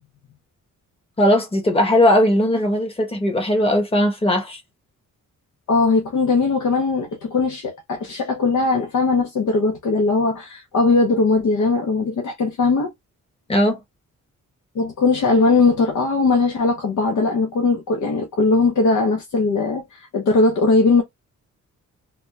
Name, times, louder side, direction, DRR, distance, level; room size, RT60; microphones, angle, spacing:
voice 1, 1.2-4.6 13.5-13.8, left 1 dB, 20° left, 1.1 m, -18 dB
voice 2, 5.7-12.9 14.7-21.0, left 3 dB, 70° left, 0.8 m, -19 dB
3.4 x 2.2 x 2.6 m
wide cardioid pair, 140°, 31 cm